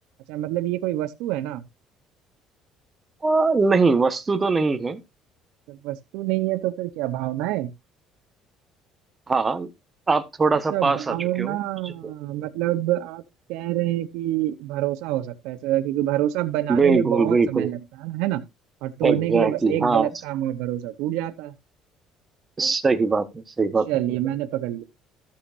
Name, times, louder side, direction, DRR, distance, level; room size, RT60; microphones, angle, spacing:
voice 1, 0.3-1.6 5.7-7.7 10.7-13.2 13.5-18.4 18.8-21.5 23.9-24.8, right 14 dB, 85° right, 0.8 m, -26 dB
voice 2, 3.2-5.0 9.3-9.7 10.1-11.6 11.8-11.9 16.7-17.7 19.0-20.1 22.6-23.9, right 4 dB, 25° right, 1.2 m, -21 dB
14.0 x 7.1 x 2.6 m
cardioid pair, 115°, 0 cm